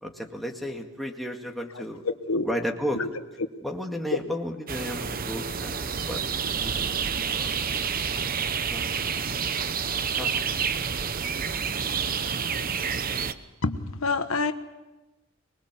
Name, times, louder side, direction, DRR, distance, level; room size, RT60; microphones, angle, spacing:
voice 1, 0.0-2.0 2.4-3.0 3.6-6.2 6.5-7.5 7.9-8.3 8.7-9.2 10.1-10.7 11.0-11.1, equal, ahead, 1 dB, 2.1 m, -34 dB
sound 1, 4.7-13.3, right 6 dB, 45° right, 0.9 m, -29 dB
voice 2, 13.6-14.5, left 3 dB, 85° left, 9 dB, 1.2 m, -27 dB
24.5 x 21.0 x 7.4 m, 1.1 s
head